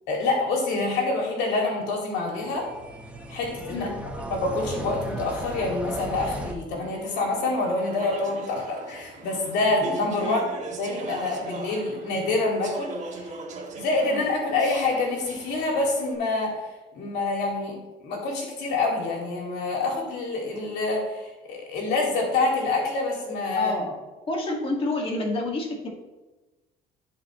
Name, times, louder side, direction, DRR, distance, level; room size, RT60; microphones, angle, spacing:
voice 1, 0.1-2.7 3.3-3.9 4.3-10.4 10.8-13.4 13.8-16.6 16.9-17.7 18.0-23.7, left 3 dB, 90° left, 0 dB, 2.5 m, -26 dB
sound 1, 2.4-6.5, right 1 dB, 10° right, 1.2 m, -36 dB
Speech / Chatter, 6.8-16.1, right 3 dB, 45° right, 1.5 m, -40 dB
voice 2, 23.5-25.9, left 2 dB, 35° left, -1 dB, 2.1 m, -29 dB
14.5 x 4.9 x 3.2 m, 1.1 s
cardioid pair, 110°, 17 cm